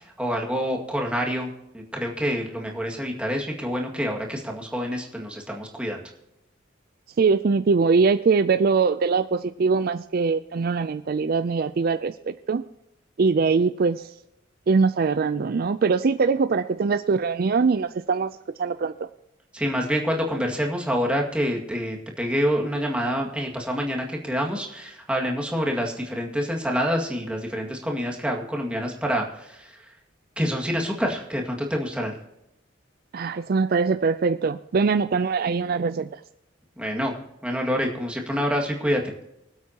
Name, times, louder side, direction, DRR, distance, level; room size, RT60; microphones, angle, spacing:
voice 1, 0.2-1.5 1.7-6.0 19.5-29.7 30.4-32.1 36.8-37.1 37.4-39.1, equal, 5° right, 0 dB, 2.0 m, -27 dB
voice 2, 7.2-12.6 13.2-14.1 14.7-18.3 18.6-18.9 33.1-36.2, right 4 dB, 50° right, 12 dB, 0.4 m, -22 dB
24.5 x 8.2 x 2.9 m, 0.86 s
head